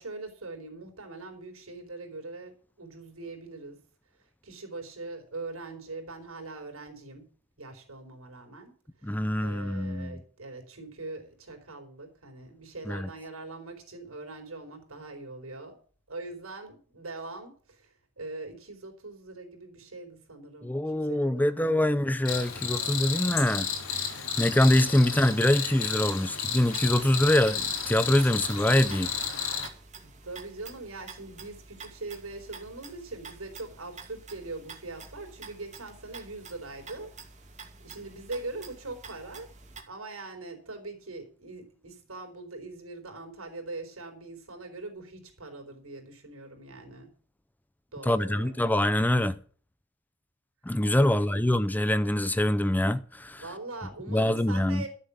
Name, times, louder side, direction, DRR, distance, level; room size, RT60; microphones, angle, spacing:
voice 1, 0.0-3.8 4.4-7.3 7.6-8.7 9.0-9.2 9.4-15.8 16.1-22.0 25.0-25.2 30.0-37.1 37.8-39.5 39.9-47.1 47.9-48.5 51.0-51.4 53.4-54.9, right 2 dB, 85° right, 4.5 m, -42 dB
voice 2, 9.0-10.2 12.9-13.1 20.6-23.7 24.4-29.1 48.1-49.4 50.7-53.4 54.1-54.9, left 1 dB, 10° left, 0.6 m, -24 dB
Cricket, 22.3-29.7, left 7 dB, 80° left, 3.0 m, -32 dB
sound 1, 26.4-39.8, right 4 dB, 35° right, 2.7 m, -48 dB
12.5 x 7.5 x 8.5 m
head